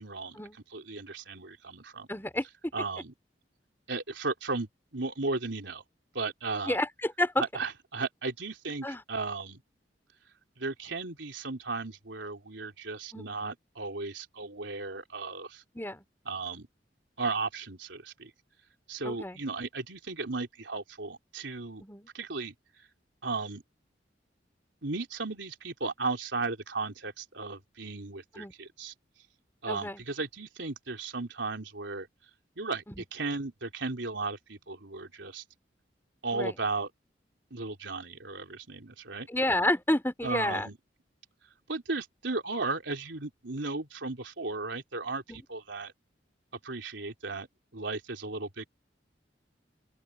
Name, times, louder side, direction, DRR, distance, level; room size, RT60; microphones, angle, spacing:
voice 1, 0.0-0.4 0.7-2.1 2.7-3.1 3.9-5.8 6.1-6.8 7.4-9.6 10.6-15.6 16.3-16.7 17.2-18.3 18.9-21.8 22.1-22.5 23.2-23.6 24.8-28.9 29.6-32.1 32.6-35.4 36.2-36.9 37.5-39.3 40.2-40.8 41.7-45.9 46.6-47.5 47.7-48.7, right 3 dB, 90° right, 3.5 m, -35 dB
voice 2, 2.1-2.4 6.7-7.4 8.8-9.0 13.1-13.3 15.7-16.0 19.0-19.4 21.8-22.1 28.4-28.5 29.7-30.0 36.3-36.5 39.3-40.7 45.3-45.4, left 1 dB, 15° left, 4.4 m, -30 dB
open air
head